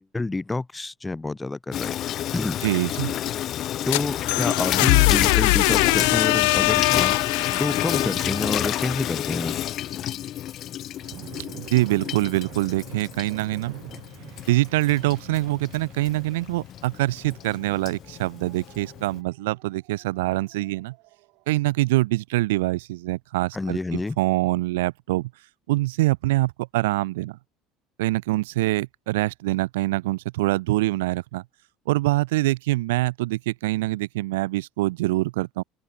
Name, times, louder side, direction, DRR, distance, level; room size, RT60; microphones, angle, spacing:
voice 1, 0.0-2.0 2.3-2.6 3.8-7.2 7.6-9.6 23.5-24.2, left 3 dB, 15° left, 1.4 m, -28 dB
Water tap faucet / Sink (filling or washing), 1.7-19.2, left 11 dB, 50° left, 0.9 m, -30 dB
voice 2, 2.6-3.2 11.5-13.8 14.5-20.9 21.5-23.8 24.2-25.3 25.7-27.4 28.0-31.4 31.9-35.6, right 19 dB, 90° right, 0.4 m, -24 dB
sound 1, 3.6-9.5, left 28 dB, 80° left, 0.4 m, -22 dB
sound 2, 10.9-21.5, right 25 dB, 70° right, 5.0 m, -47 dB
supercardioid pair, 90°, 0 cm